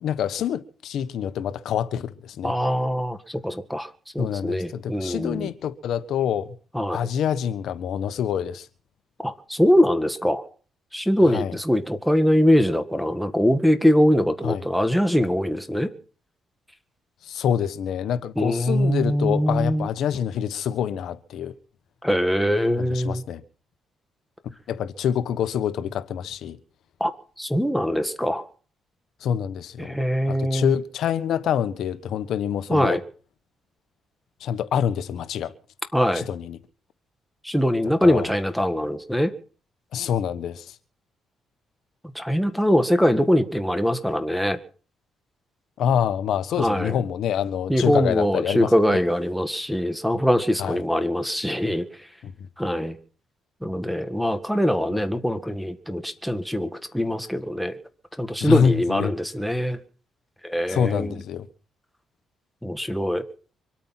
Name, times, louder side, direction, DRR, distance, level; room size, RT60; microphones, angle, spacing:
voice 1, 0.0-2.5 4.2-6.5 6.9-8.7 11.2-11.6 14.4-14.6 17.2-21.5 22.8-23.4 24.7-26.6 29.2-30.0 30.3-33.0 34.4-35.5 36.1-36.6 38.0-38.3 39.9-40.7 45.8-49.0 50.6-50.8 52.2-52.5 54.9-55.0 58.4-59.1 60.7-61.5, left 9 dB, 75° left, 1.3 m, -26 dB
voice 2, 2.4-3.9 4.2-5.5 6.7-7.0 9.2-10.4 10.9-15.9 18.4-19.9 22.0-23.2 27.0-27.1 27.4-28.4 29.8-30.7 32.7-33.0 35.9-36.3 37.4-39.3 42.2-44.6 46.6-47.0 47.7-51.9 52.6-53.0 53.6-57.8 58.2-59.8 60.4-61.1 62.6-63.2, equal, ahead, 1.9 m, -22 dB
25.0 x 8.9 x 5.9 m
cardioid pair, 90°, 0 cm